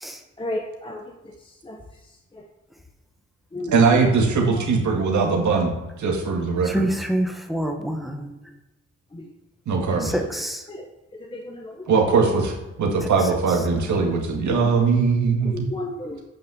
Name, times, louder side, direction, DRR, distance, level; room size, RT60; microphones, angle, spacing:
voice 1, 0.4-1.0 1.6-1.8 3.5-3.7 9.1-9.2 9.9-10.0 10.7-10.8 11.3-11.9 15.5-16.2, left 1 dB, 20° left, 2 dB, 0.9 m, -32 dB
voice 2, 3.7-5.7 6.0-6.9 9.7-10.2 11.9-15.7, right 4 dB, 85° right, 1 dB, 2.0 m, -20 dB
voice 3, 6.6-8.3 10.0-10.6, right 1 dB, ahead, 3 dB, 1.2 m, -26 dB
8.7 x 5.6 x 7.1 m, 1.0 s
wide cardioid pair, 130°, 29 cm